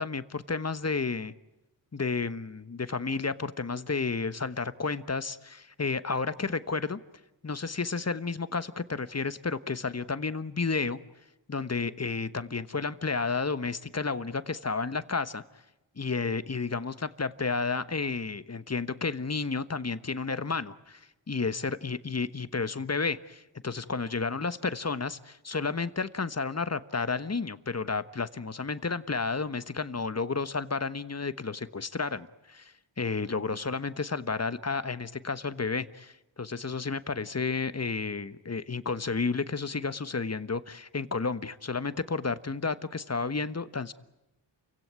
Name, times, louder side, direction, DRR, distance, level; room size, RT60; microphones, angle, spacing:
voice 1, 0.0-1.3 1.9-7.0 7.4-11.0 11.5-15.4 16.0-43.9, left 4 dB, 30° left, 14 dB, 1.2 m, -31 dB
29.0 x 16.5 x 9.6 m, 0.96 s
cardioid pair, 40°, 48 cm